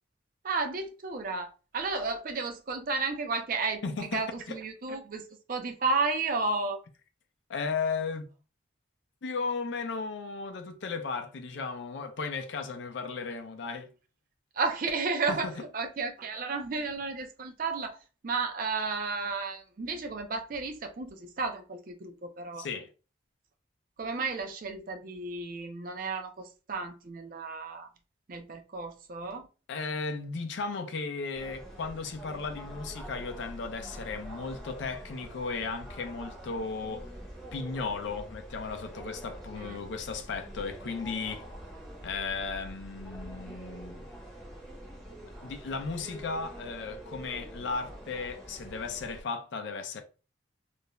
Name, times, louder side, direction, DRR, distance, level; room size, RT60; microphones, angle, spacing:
voice 1, 0.4-6.8 14.5-18.0 18.2-22.7 24.0-27.9 28.3-29.5 39.6-39.8, right 4 dB, 45° right, 0.4 m, -33 dB
voice 2, 3.8-4.6 7.5-8.3 9.2-13.9 15.3-15.5 22.6-22.9 29.7-37.1 37.5-41.5 42.0-44.1 45.4-50.0, left 4 dB, 65° left, 0.4 m, -35 dB
sound 1, 31.3-49.2, equal, ahead, 0.7 m, -45 dB
2.4 x 2.1 x 2.9 m
head